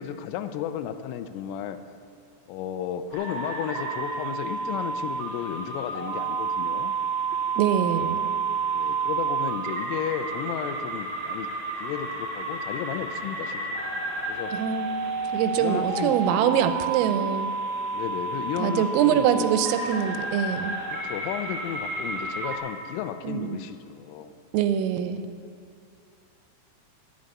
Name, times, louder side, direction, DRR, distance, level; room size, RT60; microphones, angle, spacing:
voice 1, 0.0-1.8 2.5-7.0 8.7-11.5 11.8-13.9 14.3-14.6 15.5-16.2 17.9-19.5 20.9-24.3, left 9 dB, 85° left, 10 dB, 3.1 m, -33 dB
sound 1, 3.1-22.6, right 4 dB, 60° right, 1.8 m, -30 dB
voice 2, 7.6-8.3 14.5-15.0 15.3-17.5 18.6-20.8 23.2-23.6 24.5-25.3, right 9 dB, 85° right, 9 dB, 3.2 m, -24 dB
11.0 x 7.8 x 8.5 m, 2.5 s
omnidirectional pair, 5.9 m